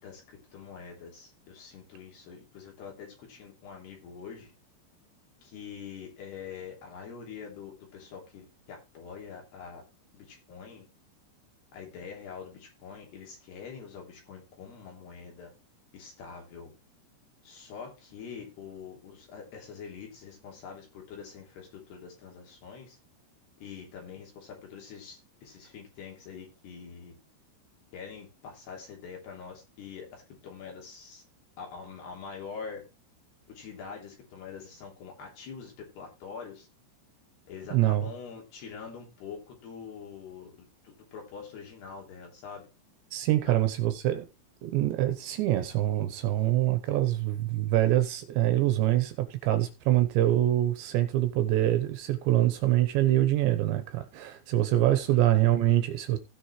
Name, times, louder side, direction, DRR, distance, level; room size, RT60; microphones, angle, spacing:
voice 1, 0.0-4.5 5.4-9.8 10.1-10.9 11.7-15.5 15.9-16.7 17.4-23.0 23.6-27.1 27.9-31.2 31.6-32.8 33.5-36.7 37.5-42.7 43.4-43.6 55.1-55.3, left 6 dB, 60° left, 5.1 m, -44 dB
voice 2, 37.7-38.1 43.1-44.3 44.6-56.2, right 14 dB, 75° right, 3.0 m, -25 dB
16.0 x 6.2 x 3.2 m
omnidirectional pair, 5.6 m